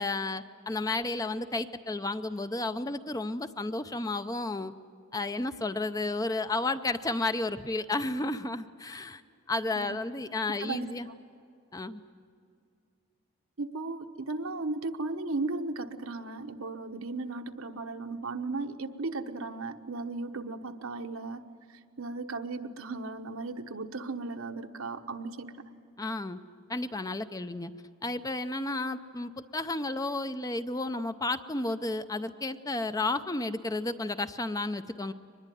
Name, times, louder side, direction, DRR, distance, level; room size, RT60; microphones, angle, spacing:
voice 1, 0.0-4.7 5.1-9.2 9.5-11.1 11.7-12.0 26.0-26.4 26.7-27.7 28.0-35.1, left 2 dB, 15° left, 11 dB, 0.6 m, -32 dB
voice 2, 10.6-10.9 13.6-21.5 22.0-25.5, right 3 dB, 75° right, 7 dB, 1.2 m, -36 dB
24.0 x 20.5 x 9.2 m, 2.4 s
head